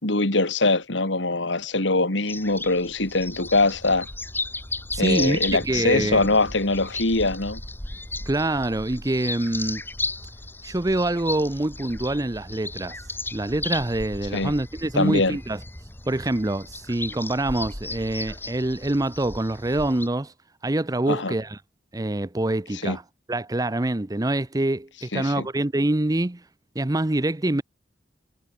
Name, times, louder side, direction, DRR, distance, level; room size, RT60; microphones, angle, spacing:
voice 1, 0.0-4.1 5.0-7.6 14.3-14.5 14.9-15.4 21.1-21.3 22.8-23.0 25.1-25.5, left 2 dB, 75° left, 3.0 m, -23 dB
sound 1, 2.3-20.1, left 2 dB, 10° left, 1.8 m, -35 dB
voice 2, 4.9-6.3 8.3-9.8 10.6-13.0 13.3-15.6 16.1-20.3 20.6-21.6 21.9-23.0 23.3-26.4 26.7-27.6, right 1 dB, 20° right, 0.7 m, -25 dB
head